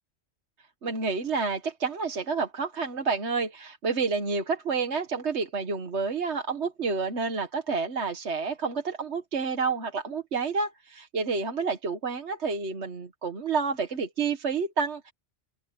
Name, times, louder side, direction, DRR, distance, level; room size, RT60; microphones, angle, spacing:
voice 1, 0.8-15.1, right 4 dB, 70° right, 1.8 m, -29 dB
open air
omnidirectional pair, 1.2 m